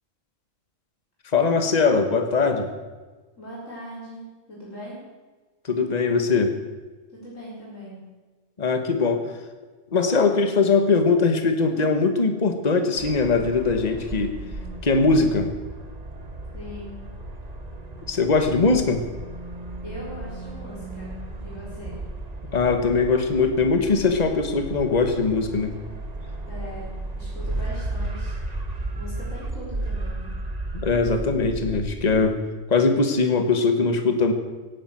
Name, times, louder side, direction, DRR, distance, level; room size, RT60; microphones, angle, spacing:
voice 1, 1.3-2.7 5.6-6.5 8.6-9.2 9.9-14.3 14.8-15.5 18.1-19.0 22.5-25.7 30.7-32.4 32.7-34.3, left 4 dB, 35° left, 6 dB, 1.5 m, -21 dB
voice 2, 3.4-5.0 7.1-8.0 16.5-17.0 19.8-21.2 21.4-22.0 26.5-28.3 28.7-30.3, equal, 85° left, -6 dB, 4.7 m, -40 dB
sound 1, 13.0-32.3, right 2 dB, 30° right, 1.5 m, -34 dB
17.5 x 10.5 x 7.7 m, 1.3 s
omnidirectional pair, 1.3 m